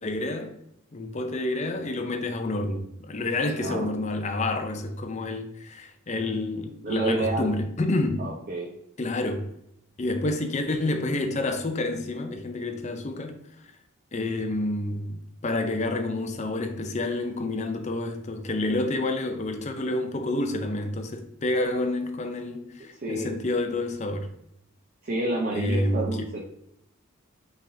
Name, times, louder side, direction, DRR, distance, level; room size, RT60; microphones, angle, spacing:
voice 1, 0.0-0.5 0.9-8.3 9.0-9.5 10.0-13.4 14.1-24.3 25.5-26.3, left 2 dB, 30° left, 0.5 m, -29 dB
voice 2, 3.5-3.9 6.8-7.5 8.2-8.7 23.0-23.3 25.0-26.4, right 2 dB, 40° right, 0.6 m, -29 dB
5.4 x 3.5 x 2.6 m
head